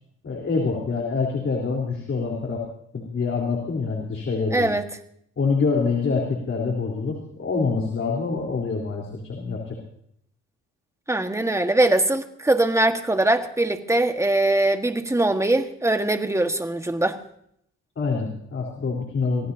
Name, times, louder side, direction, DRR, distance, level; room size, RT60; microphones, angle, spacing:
voice 1, 0.2-2.7 2.9-4.7 5.4-9.8 18.0-19.5, left 4 dB, 45° left, 0 dB, 3.9 m, -26 dB
voice 2, 4.5-4.9 11.1-17.2, right 2 dB, 10° right, 6 dB, 1.6 m, -22 dB
26.0 x 17.5 x 2.8 m, 0.70 s
cardioid pair, 90°, 30 cm